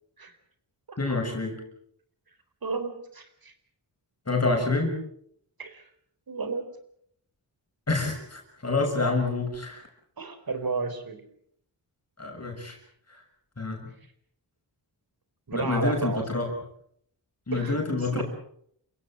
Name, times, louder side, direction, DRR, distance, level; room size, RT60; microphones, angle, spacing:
voice 1, 1.0-1.6 4.3-5.0 7.9-9.8 12.2-12.8 13.1-13.2 13.6-13.9 15.5-16.5 17.5-18.2, left 3 dB, 35° left, 2 dB, 6.6 m, -27 dB
voice 2, 2.6-3.5 5.6-5.9 6.3-6.6 10.2-11.2 15.5-16.3 17.5-17.8 18.1-18.2, right 4 dB, 55° right, 10 dB, 4.3 m, -32 dB
30.0 x 16.5 x 7.7 m, 0.69 s
wide cardioid pair, 120°, 43 cm